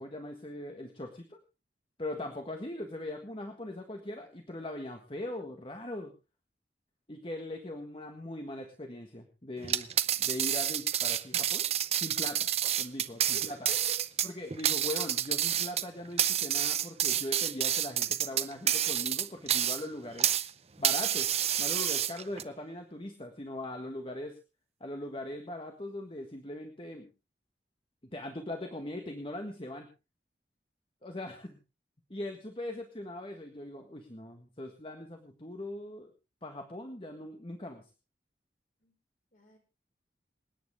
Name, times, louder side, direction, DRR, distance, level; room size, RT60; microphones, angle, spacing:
voice 1, 0.0-1.4 2.0-6.1 7.1-9.9 10.2-11.7 12.0-12.5 12.8-13.7 14.2-20.3 20.8-21.3 21.6-24.4 24.8-27.1 28.1-29.9 31.0-31.6 32.1-36.1 36.4-37.9, left 1 dB, 30° left, 4 dB, 1.7 m, -40 dB
sound 1, 9.6-20.5 20.8-22.4, right 10 dB, 35° right, 0.7 m, -29 dB
voice 2, 13.3-14.1 38.8-38.9 39.3-39.6, left 1 dB, 45° left, 3 dB, 5.2 m, -48 dB
27.0 x 9.4 x 3.6 m, 0.31 s
head